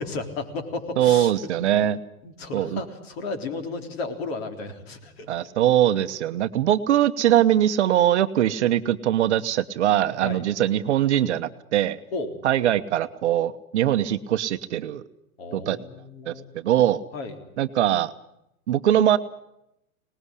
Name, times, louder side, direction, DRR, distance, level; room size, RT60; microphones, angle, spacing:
voice 1, 0.0-1.3 2.2-5.5 10.2-10.4 12.1-12.4 15.4-16.5 17.1-17.3, left 3 dB, 45° left, 7 dB, 3.8 m, -33 dB
voice 2, 1.0-2.0 2.5-2.8 5.3-12.0 12.4-15.0 15.5-15.8 16.3-17.0 17.6-18.1 18.7-19.2, right 11 dB, 50° right, 11 dB, 1.1 m, -22 dB
24.5 x 19.5 x 9.8 m, 0.84 s
supercardioid pair, 170°, 43 cm